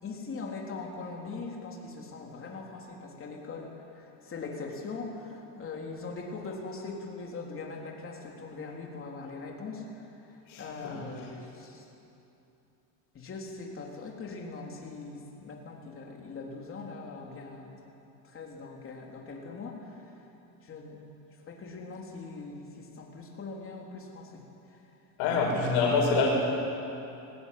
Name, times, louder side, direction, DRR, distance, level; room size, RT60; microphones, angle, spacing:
voice 1, 0.0-11.8 13.1-17.9 18.2-20.2 20.6-21.0 21.5-24.4 24.7-24.8 25.2-25.3, left 3 dB, 30° left, 0 dB, 3.6 m, -41 dB
voice 2, 10.5-11.0 25.2-26.3, left 4 dB, 85° left, -1 dB, 5.5 m, -26 dB
20.5 x 16.5 x 9.7 m, 2.9 s
cardioid pair, 140°, 42 cm